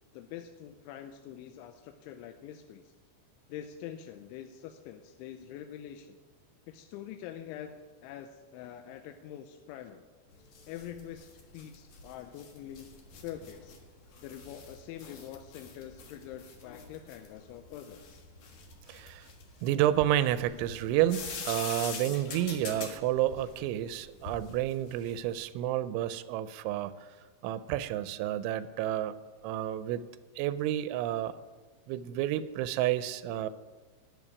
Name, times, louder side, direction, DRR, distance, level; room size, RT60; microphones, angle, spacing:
voice 1, 0.1-2.9 3.5-6.2 6.7-10.0 10.7-13.8 14.2-18.2, left 10 dB, 90° left, 6 dB, 3.1 m, -45 dB
sound 1, 10.3-25.3, left 5 dB, 55° left, 2.2 m, -45 dB
voice 2, 18.9-19.3 19.6-26.9 27.4-29.1 29.4-30.0 30.4-31.4 31.9-33.5, right 12 dB, 90° right, 13 dB, 3.0 m, -30 dB
12.5 x 7.5 x 9.7 m, 1.4 s
omnidirectional pair, 5.3 m